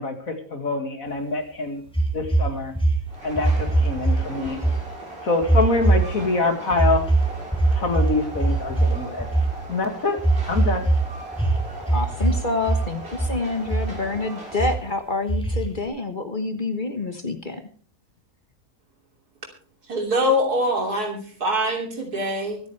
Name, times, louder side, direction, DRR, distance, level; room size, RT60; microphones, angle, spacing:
voice 1, 0.0-1.8 2.1-2.7 3.2-4.6 5.2-7.0 7.7-9.3 9.7-10.2 10.5-10.9, left 3 dB, 60° left, 5 dB, 2.6 m, -25 dB
sound 1, 1.9-4.2 4.4-4.8 5.4-6.3 6.7-9.6 10.2-11.0 11.3-12.4 12.6-13.3 13.7-14.2 14.6-14.7 15.3-15.9, right 2 dB, 5° left, 2.8 m, -21 dB
Train, 3.1-15.0, right 2 dB, 40° right, 3.8 m, -39 dB
voice 2, 11.9-17.6, left 3 dB, 35° left, 7 dB, 1.5 m, -27 dB
voice 3, 19.9-22.6, equal, 80° right, 2 dB, 3.6 m, -23 dB
24.0 x 9.3 x 3.3 m, 0.41 s
omnidirectional pair, 1.6 m